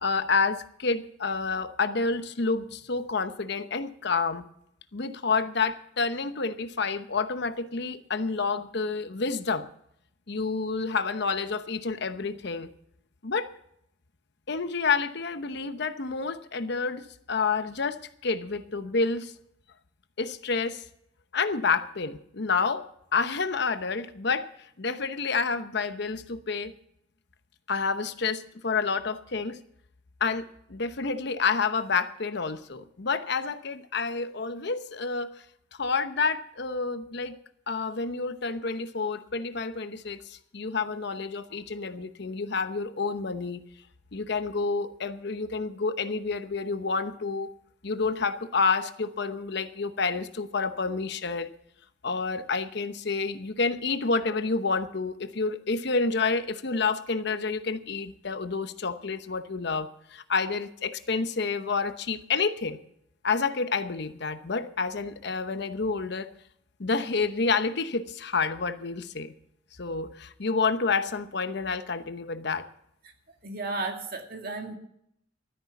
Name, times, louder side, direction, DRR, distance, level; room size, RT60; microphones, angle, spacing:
voice 1, 0.0-4.5 4.9-9.7 10.3-12.7 13.2-13.5 14.5-19.3 20.2-20.8 21.3-24.5 24.8-26.7 27.7-29.6 30.2-35.3 35.8-37.4 37.7-43.6 44.1-47.5 47.8-51.5 52.0-62.8 63.2-66.3 66.8-69.3 69.8-72.7, left 4 dB, 60° left, 0.9 m, -29 dB
voice 2, 73.3-74.8, right 3 dB, 50° right, 2.2 m, -34 dB
13.0 x 10.0 x 7.1 m
head